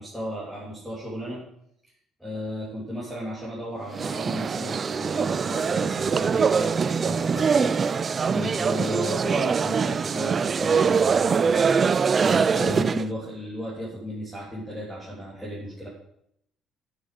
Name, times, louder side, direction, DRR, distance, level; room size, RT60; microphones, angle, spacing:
voice 1, 0.0-1.4 2.2-8.0 8.3-15.9, equal, ahead, -8 dB, 3.2 m, -34 dB
sound 1, 3.9-13.1, right 6 dB, 30° right, 0.3 m, -23 dB
9.2 x 6.7 x 7.7 m, 0.73 s
cardioid pair, 130°, 0 cm